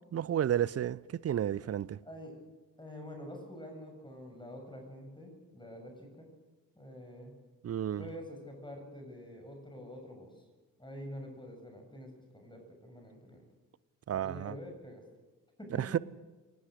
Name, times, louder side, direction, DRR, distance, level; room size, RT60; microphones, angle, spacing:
voice 1, 0.1-2.0 7.6-8.0 14.1-14.5 15.8-16.0, right 10 dB, 35° right, 0.6 m, -31 dB
voice 2, 2.8-6.3 6.8-7.4 8.0-10.3 10.8-13.4 14.2-15.0 15.6-15.8, equal, 10° left, 7.0 m, -47 dB
23.0 x 19.5 x 6.5 m
figure-of-eight pair, 45°, 45 cm